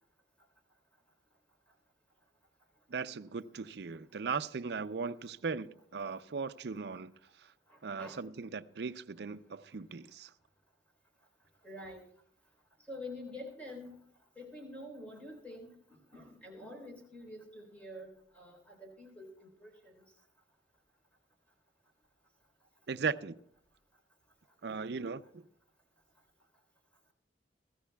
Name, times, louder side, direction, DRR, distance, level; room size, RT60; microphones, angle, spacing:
voice 1, 2.9-7.1 7.4-7.5 7.8-10.3 22.9-23.4 24.6-25.5, right 5 dB, 65° right, 0.5 m, -38 dB
voice 2, 7.7-8.2 11.6-12.0 12.9-14.0 14.4-15.8 16.1-19.9, left 1 dB, 10° left, 3.6 m, -47 dB
23.0 x 15.5 x 2.3 m
head